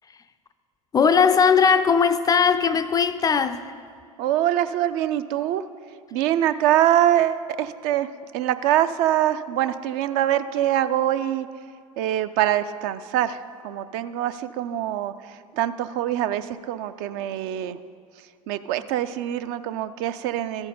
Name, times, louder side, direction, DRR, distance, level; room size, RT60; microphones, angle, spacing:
voice 1, 0.9-3.7, left 6 dB, 20° left, 0.3 m, -19 dB
voice 2, 4.2-5.6 6.1-8.1 8.3-11.5 12.0-15.1 15.5-17.8 18.5-20.7, right 12 dB, 55° right, 0.4 m, -24 dB
13.5 x 4.5 x 5.3 m
hypercardioid pair, 75°, 18 cm